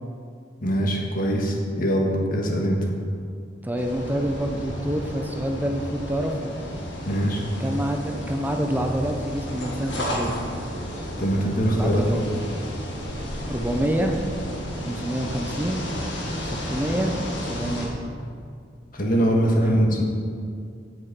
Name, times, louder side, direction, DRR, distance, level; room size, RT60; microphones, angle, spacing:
voice 1, 0.6-2.8 7.0-7.4 11.2-12.2 18.9-20.0, equal, 50° left, 0 dB, 1.5 m, -22 dB
voice 2, 3.6-6.5 7.6-10.4 11.7-12.2 13.5-14.1 14.8-15.9 16.4-17.1 17.4-18.0 19.6-19.8, right 1 dB, 10° right, 3 dB, 0.6 m, -27 dB
sound 1, 3.8-17.9, equal, 75° left, 1.9 m, -32 dB
8.0 x 7.8 x 6.0 m, 2.3 s
head